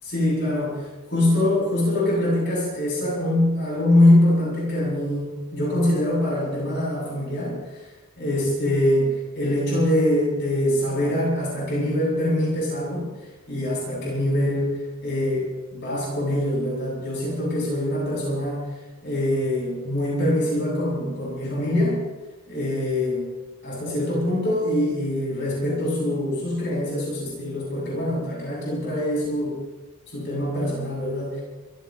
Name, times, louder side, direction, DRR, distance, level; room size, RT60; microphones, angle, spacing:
voice 1, 0.0-7.6 8.2-13.1 13.5-18.7 19.0-22.0 22.5-23.3 23.6-29.6 30.1-31.4, left 1 dB, 55° left, -6 dB, 7.7 m, -23 dB
25.0 x 17.5 x 3.3 m, 1.2 s
head